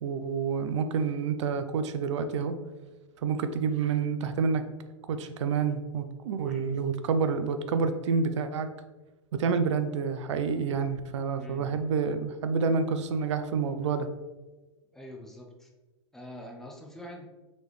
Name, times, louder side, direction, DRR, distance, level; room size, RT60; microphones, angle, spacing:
voice 1, 0.0-2.6 3.2-4.7 5.1-8.7 9.3-14.1, right 5 dB, 65° right, 9 dB, 0.5 m, -28 dB
voice 2, 6.4-6.8 11.3-11.8 14.9-15.7 16.1-17.2, left 1 dB, ahead, 0 dB, 0.6 m, -45 dB
4.0 x 3.3 x 3.1 m, 1.2 s
hypercardioid pair, 115°, 16 cm